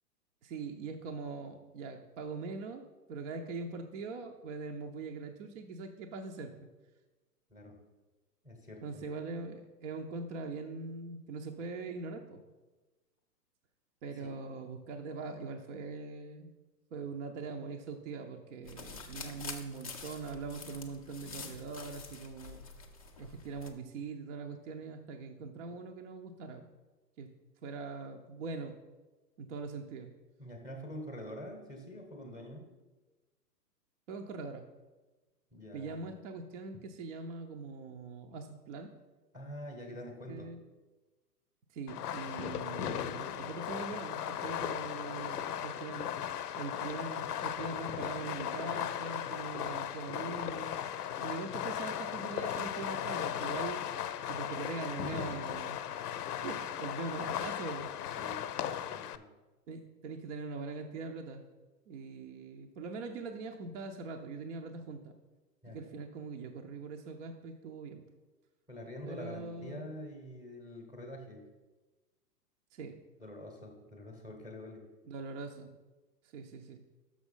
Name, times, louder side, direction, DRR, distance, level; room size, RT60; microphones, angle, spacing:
voice 1, 0.4-2.8 3.1-6.5 8.8-12.4 14.0-16.5 16.9-22.6 23.2-26.7 27.2-27.3 27.6-28.7 29.4-30.1 34.1-34.7 35.7-38.9 40.3-40.6 41.7-46.1 46.5-50.7 51.2-53.8 54.3-55.8 56.4-57.9 59.7-61.4 61.9-65.1 65.6-68.0 69.0-69.9 72.7-73.0 75.0-75.7 76.3-76.8, right 4 dB, 45° right, 3 dB, 0.7 m, -42 dB
voice 2, 8.4-9.0 14.2-14.3 30.4-32.7 35.5-36.1 36.7-36.8 39.3-40.5 58.2-58.4 58.7-59.2 65.6-65.9 68.7-71.4 73.2-74.8, equal, 5° right, 2 dB, 0.9 m, -46 dB
sound 1, 18.6-23.7, left 5 dB, 25° left, 0.3 m, -47 dB
Fireworks, 41.9-59.2, left 10 dB, 70° left, 0.6 m, -37 dB
6.3 x 6.0 x 5.5 m, 1.2 s
hypercardioid pair, 130°, 49 cm